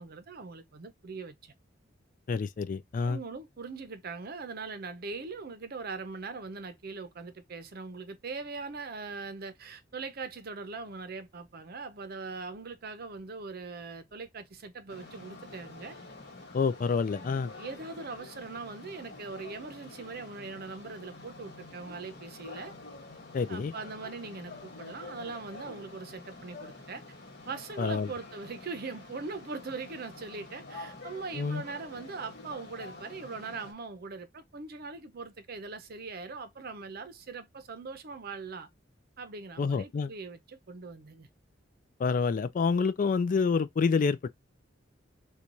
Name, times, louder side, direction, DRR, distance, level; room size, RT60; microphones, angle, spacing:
voice 1, 0.0-1.5 3.0-16.0 17.2-22.7 23.5-27.0 27.5-38.7 39.2-41.3, right 4 dB, 50° right, 0.6 m, -41 dB
voice 2, 2.3-3.2 16.5-17.5 23.3-23.7 27.8-28.1 31.3-31.6 39.6-40.1 42.0-44.3, left 5 dB, 45° left, 0.3 m, -28 dB
sound 1, 14.9-33.7, left 2 dB, 60° left, 1.1 m, -47 dB
4.5 x 2.3 x 2.6 m
head